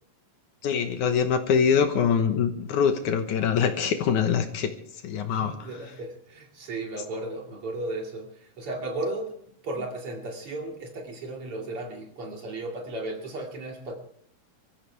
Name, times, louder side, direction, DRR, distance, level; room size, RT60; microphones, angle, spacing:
voice 1, 0.6-4.7 5.0-5.5, left 7 dB, 70° left, 7 dB, 2.2 m, -24 dB
voice 2, 5.4-9.4 9.6-14.0, right 2 dB, 40° right, 1 dB, 2.9 m, -35 dB
24.0 x 14.5 x 3.4 m, 0.63 s
omnidirectional pair, 4.2 m